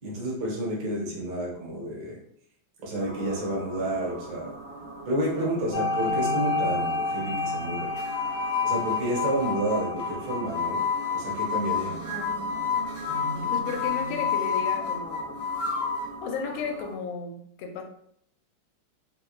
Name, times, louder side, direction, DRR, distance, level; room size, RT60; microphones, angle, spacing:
voice 1, 0.0-2.2 2.8-4.5 5.1-7.9 8.6-10.8 11.1-12.0, right 1 dB, 60° right, -4 dB, 1.5 m, -30 dB
sound 1, 3.0-17.0, right 1 dB, 75° right, 1.7 m, -39 dB
sound 2, 5.7-10.8, left 2 dB, 60° left, 1.2 m, -31 dB
sound 3, 8.0-16.1, left 6 dB, 25° left, 0.7 m, -29 dB
voice 2, 12.1-12.5 13.4-15.4 16.2-17.8, left 5 dB, 80° left, 3 dB, 1.4 m, -34 dB
4.3 x 2.2 x 2.3 m, 0.68 s
omnidirectional pair, 2.3 m